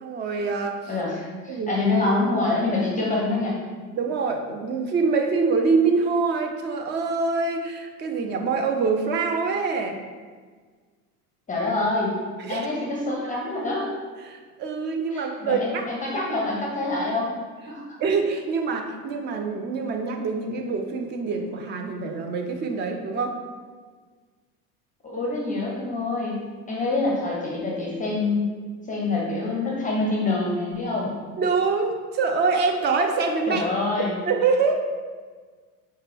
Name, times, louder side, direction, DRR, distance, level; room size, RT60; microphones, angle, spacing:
voice 1, 0.0-0.9 1.5-1.7 3.9-10.0 12.4-12.7 14.3-15.9 18.0-23.4 31.4-33.7 34.3-34.7, right 4 dB, 25° right, 4 dB, 0.4 m, -25 dB
voice 2, 0.9-3.6 11.5-12.2 12.5-13.9 15.1-17.3 17.7-18.0 25.0-28.6 28.9-31.1 33.5-34.2, left 2 dB, 15° left, -3 dB, 0.7 m, -26 dB
5.5 x 2.3 x 3.3 m, 1.5 s
hypercardioid pair, 80°, 46 cm